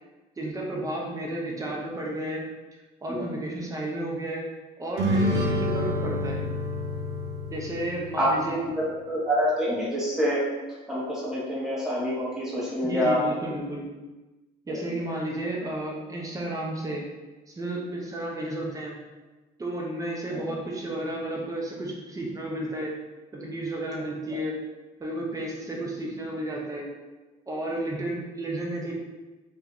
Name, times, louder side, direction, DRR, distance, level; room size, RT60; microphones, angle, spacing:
voice 1, 0.4-2.4 3.0-4.4 4.8-6.4 7.5-8.6 12.8-13.8 14.7-17.0 17.5-19.0 19.6-23.0 23.3-24.6 25.0-26.9 27.5-28.9, right 1 dB, 20° right, -2 dB, 0.7 m, -32 dB
sound 1, 5.0-8.6, left 1 dB, 85° right, 0.7 m, -28 dB
voice 2, 8.2-10.5 10.9-13.2 14.7-14.9 20.3-20.4, equal, 5° right, -8 dB, 1.2 m, -27 dB
2.7 x 2.4 x 3.7 m, 1.2 s
cardioid pair, 110°, 17 cm